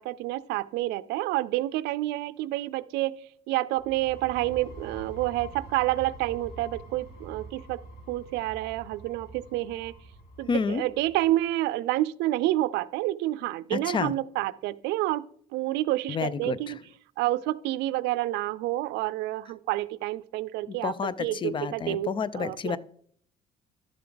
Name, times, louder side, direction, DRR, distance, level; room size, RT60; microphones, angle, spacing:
voice 1, 0.0-3.1 3.5-7.8 8.1-9.9 10.4-15.2 15.5-16.8 17.2-20.9 21.2-22.1 22.3-22.8, right 16 dB, 90° right, 16 dB, 0.4 m, -29 dB
sound 1, 3.8-11.4, right 2 dB, 70° left, 3.0 m, -46 dB
voice 2, 10.5-10.8 13.7-14.1 16.1-16.8 20.7-22.8, left 5 dB, 30° left, 18 dB, 0.5 m, -30 dB
11.5 x 6.9 x 3.9 m, 0.62 s
cardioid pair, 110°, 17 cm